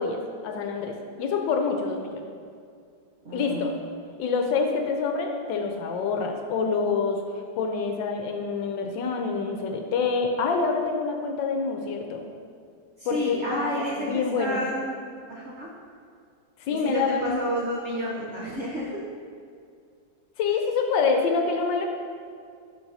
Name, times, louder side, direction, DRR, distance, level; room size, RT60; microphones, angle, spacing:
voice 1, 0.0-2.2 3.3-3.7 4.2-7.2 7.6-12.2 13.0-14.7 16.6-17.4 20.4-21.9, left 4 dB, 75° left, 3 dB, 1.2 m, -26 dB
voice 2, 3.2-3.7 13.0-15.0 15.3-15.7 16.7-19.0, equal, 55° right, -5 dB, 0.8 m, -30 dB
10.5 x 4.5 x 2.7 m, 2.3 s
omnidirectional pair, 2.1 m